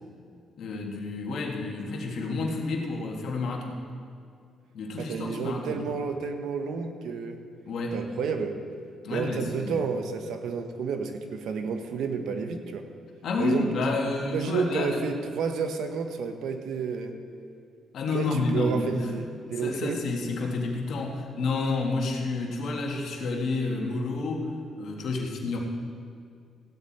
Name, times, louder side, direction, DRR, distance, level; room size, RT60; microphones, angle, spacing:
voice 1, 0.6-3.8 4.7-6.0 7.7-8.0 9.0-9.8 13.2-15.0 17.9-19.1 19.6-24.5 24.8-25.6, left 3 dB, 70° left, 0 dB, 1.9 m, -30 dB
voice 2, 5.0-7.4 7.9-8.6 9.1-12.8 13.4-13.7 14.3-17.2 18.1-20.0, right 5 dB, 80° right, 6 dB, 1.1 m, -31 dB
15.5 x 9.2 x 4.3 m, 2.2 s
cardioid pair, 90°, 0 cm